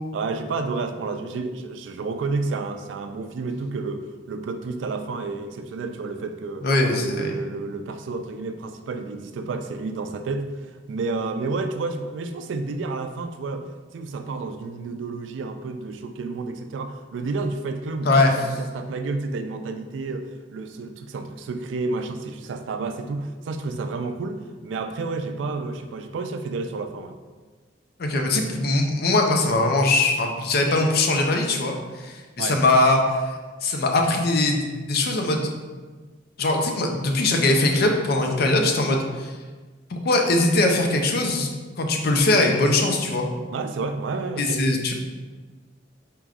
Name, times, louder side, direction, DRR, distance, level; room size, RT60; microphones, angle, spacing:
voice 1, 0.1-6.7 7.0-27.2 32.4-32.6 43.5-44.6, right 3 dB, 80° right, 8 dB, 0.3 m, -30 dB
voice 2, 6.6-7.3 18.0-18.3 28.0-33.3 33.6-35.5 36.4-39.3 39.9-41.5 41.8-43.3 44.4-44.9, left 2 dB, 55° left, 3 dB, 0.5 m, -21 dB
4.8 x 3.0 x 2.4 m, 1.4 s
head